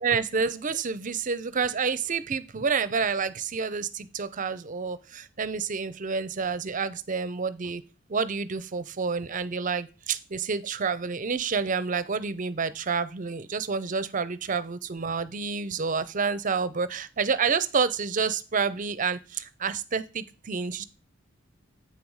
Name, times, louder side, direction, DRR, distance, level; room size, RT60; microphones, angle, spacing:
voice 1, 0.0-7.8 8.1-20.9, right 5 dB, 40° right, 15 dB, 0.6 m, -29 dB
8.4 x 4.7 x 5.5 m, 0.32 s
head